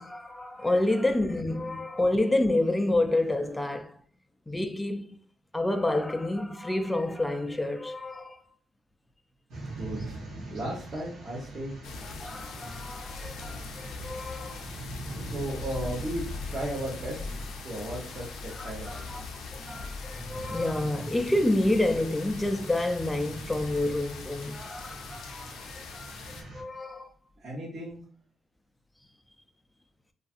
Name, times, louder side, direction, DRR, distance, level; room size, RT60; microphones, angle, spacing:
voice 1, 0.0-4.0 4.5-5.2 5.5-8.4 12.0-14.7 18.5-19.2 19.6-27.1, left 1 dB, 10° left, 0.3 m, -29 dB
sound 1, 9.5-26.6, right 2 dB, 80° right, 1.1 m, -43 dB
voice 2, 9.8-10.2 10.5-11.8 15.2-17.4 17.6-19.3 27.4-28.0, right 1 dB, 45° right, 0.9 m, -35 dB
sound 2, 11.8-26.4, left 4 dB, 75° left, 0.4 m, -41 dB
2.6 x 2.4 x 2.4 m
cardioid pair, 90°, 0 cm